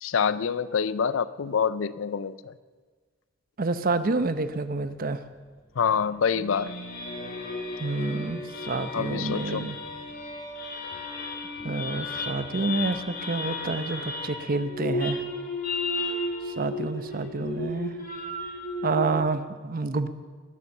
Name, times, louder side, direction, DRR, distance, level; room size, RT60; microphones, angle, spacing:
voice 1, 0.0-2.5 5.8-6.7 8.9-9.7, left 6 dB, 90° left, 16 dB, 0.5 m, -26 dB
voice 2, 3.6-5.2 7.8-9.8 11.6-15.2 16.5-17.9 18.8-20.1, right 3 dB, 45° right, 12 dB, 0.7 m, -28 dB
sound 1, 5.9-19.1, left 2 dB, 50° left, 2.1 m, -34 dB
20.0 x 7.1 x 7.2 m, 1.5 s
head